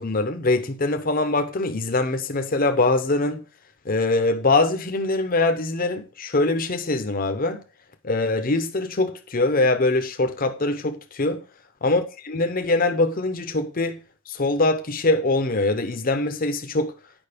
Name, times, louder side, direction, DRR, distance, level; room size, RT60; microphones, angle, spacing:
voice 1, 0.0-3.4 3.8-7.6 8.0-11.4 11.8-14.0 14.3-16.9, left 2 dB, 45° left, 0.9 m, -23 dB
9.0 x 5.4 x 5.1 m
head